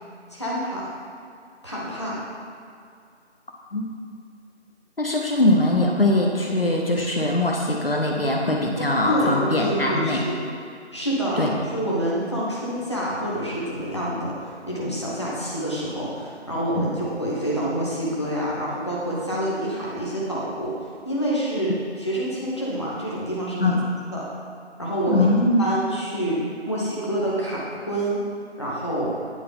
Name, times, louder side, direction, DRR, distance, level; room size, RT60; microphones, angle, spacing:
voice 1, 0.3-0.9 1.6-2.2 8.8-10.4 10.9-14.3 14.7-20.7 21.0-21.7 22.0-23.7 24.1-24.3 24.8-25.3 25.6-26.4 26.6-28.2 28.6-29.1, right 1 dB, 25° left, -7 dB, 1.0 m, -27 dB
voice 2, 5.0-10.2 11.3-11.5 16.8-16.9 23.6-23.8 25.1-25.7, left 1 dB, 55° left, -1 dB, 1.0 m, -21 dB
9.4 x 4.1 x 5.6 m, 2.4 s
figure-of-eight pair, 170°, 35 cm